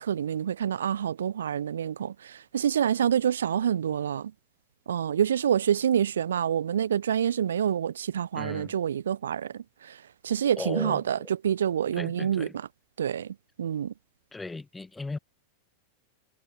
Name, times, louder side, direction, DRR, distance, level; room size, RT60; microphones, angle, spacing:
voice 1, 0.0-4.3 4.9-12.7 13.0-13.9, right 9 dB, 65° right, 0.9 m, -27 dB
voice 2, 8.3-8.8 10.6-11.0 12.0-12.5 14.3-15.2, left 3 dB, 10° left, 7.7 m, -36 dB
figure-of-eight pair, 90°, 0 cm